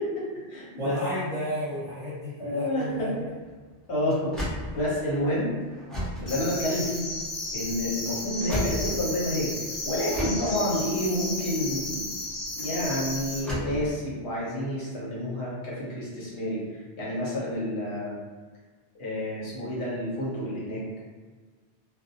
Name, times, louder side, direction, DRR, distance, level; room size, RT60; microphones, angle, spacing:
voice 1, 0.0-1.0 2.4-3.1 3.9-5.5 6.2-7.0 7.5-9.5 9.8-12.0 12.5-18.1 19.0-21.0, left 1 dB, 80° left, -7 dB, 1.1 m, -29 dB
voice 2, 0.8-3.3, equal, 35° right, -10 dB, 0.7 m, -33 dB
sound 1, 2.9-9.6 10.1-13.9, equal, ahead, 0.4 m, -35 dB
sound 2, 6.3-13.4, left 2 dB, 45° left, 0.6 m, -34 dB
2.5 x 2.1 x 2.6 m, 1.4 s
omnidirectional pair, 1.1 m